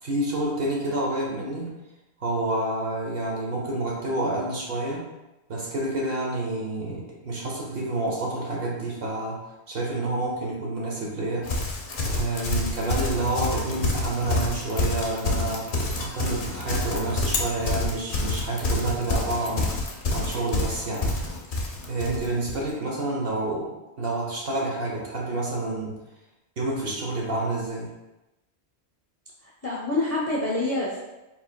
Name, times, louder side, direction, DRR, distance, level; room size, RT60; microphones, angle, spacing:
voice 1, 0.0-1.8 2.2-5.1 5.5-9.4 9.7-11.5 12.1-21.1 21.9-26.0 26.6-27.9, right 2 dB, 60° right, -3 dB, 1.2 m, -29 dB
Livestock farm animals working animals, 11.4-22.6, left 2 dB, 55° left, 0.8 m, -28 dB
voice 2, 29.4-31.0, left 2 dB, 15° left, -5 dB, 0.6 m, -27 dB
4.6 x 3.9 x 2.2 m, 0.99 s
omnidirectional pair, 1.2 m